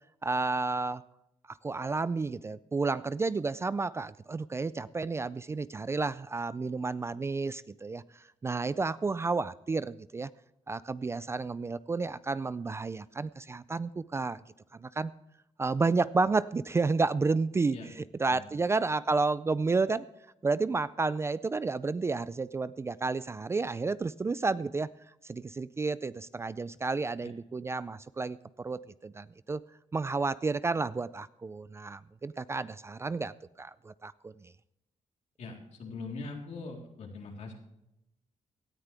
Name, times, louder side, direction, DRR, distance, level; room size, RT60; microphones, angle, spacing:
voice 1, 0.2-1.0 1.5-10.3 10.7-14.4 14.8-15.1 15.6-20.1 20.4-24.9 25.2-29.6 29.9-34.3, right 3 dB, 20° right, 16 dB, 0.4 m, -31 dB
voice 2, 35.4-37.5, left 3 dB, 65° left, 0 dB, 3.7 m, -42 dB
18.0 x 13.5 x 3.4 m, 0.86 s
cardioid pair, 140°, 12 cm